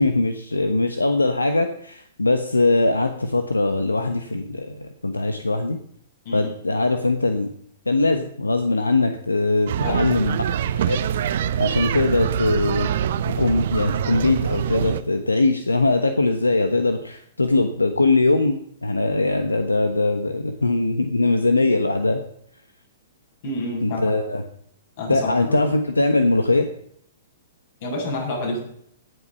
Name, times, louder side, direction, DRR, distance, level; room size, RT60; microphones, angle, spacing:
voice 1, 0.0-5.8 6.3-7.5 7.9-10.4 10.8-11.0 11.6-12.9 13.3-22.2 23.8-24.4 25.1-26.7, left 2 dB, 90° left, 7 dB, 1.2 m, -21 dB
sound 1, 9.7-15.0, right 9 dB, 60° right, 0.9 m, -24 dB
voice 2, 9.8-10.4 23.4-24.1 25.0-25.6 27.8-28.6, left 1 dB, 55° left, -1 dB, 7.5 m, -29 dB
18.0 x 8.0 x 5.7 m, 0.66 s
figure-of-eight pair, 115°, 0 cm